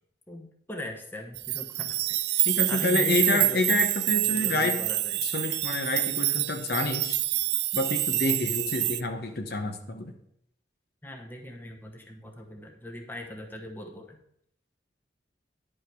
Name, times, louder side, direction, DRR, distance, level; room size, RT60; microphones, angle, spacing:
voice 1, 0.3-2.4 2.7-3.6 4.2-5.3 11.0-14.2, left 1 dB, 10° left, 2 dB, 1.0 m, -40 dB
sound 1, 1.3-9.0, right 17 dB, 60° right, 0.4 m, -27 dB
voice 2, 2.5-4.8 5.2-7.2 7.7-10.1, left 2 dB, 55° left, 5 dB, 0.8 m, -28 dB
10.5 x 5.5 x 4.7 m, 0.71 s
head